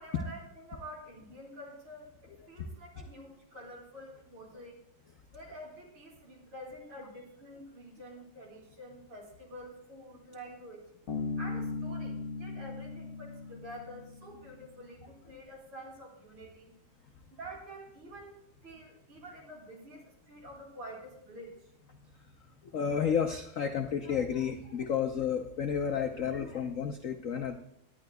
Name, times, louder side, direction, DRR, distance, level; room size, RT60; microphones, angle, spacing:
voice 1, 0.0-4.8 5.3-10.9 11.4-16.7 17.3-18.4 18.6-21.7, equal, 80° right, 0 dB, 3.6 m, -48 dB
Bass guitar, 11.1-14.5, left 4 dB, 50° left, 1.5 m, -38 dB
voice 2, 22.7-27.6, left 7 dB, 75° left, 5 dB, 0.7 m, -31 dB
18.0 x 11.0 x 2.3 m, 0.73 s
omnidirectional pair, 2.3 m